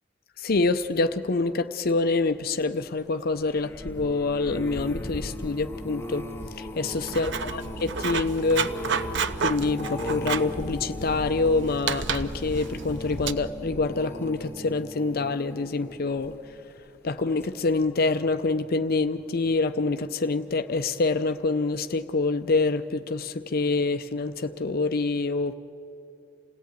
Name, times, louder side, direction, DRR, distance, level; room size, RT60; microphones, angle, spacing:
voice 1, 0.4-6.3 6.5-9.0 9.4-16.3 17.0-25.5, left 3 dB, 50° left, 0.6 m, -26 dB
sound 1, 3.3-16.7 17.2-17.5 17.8-17.9, left 1 dB, 15° left, 1.0 m, -37 dB
Writing, 6.8-13.3, right 6 dB, 65° right, 0.7 m, -32 dB
28.0 x 17.5 x 9.3 m
head